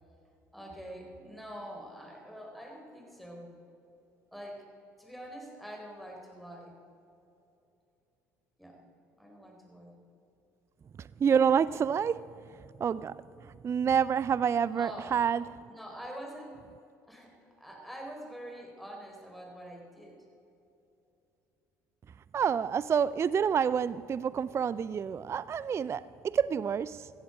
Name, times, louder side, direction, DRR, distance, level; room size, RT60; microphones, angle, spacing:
voice 1, 0.5-3.5 4.3-4.7 5.0-6.8 8.6-8.9 9.2-10.0 14.7-15.1 15.7-16.6 17.1-20.2, equal, ahead, 4.0 m, -45 dB
voice 2, 11.0-12.3 12.8-15.6 22.3-27.1, right 7 dB, 30° right, 0.3 m, -28 dB
17.0 x 14.5 x 5.1 m
hypercardioid pair, 60°, 9 cm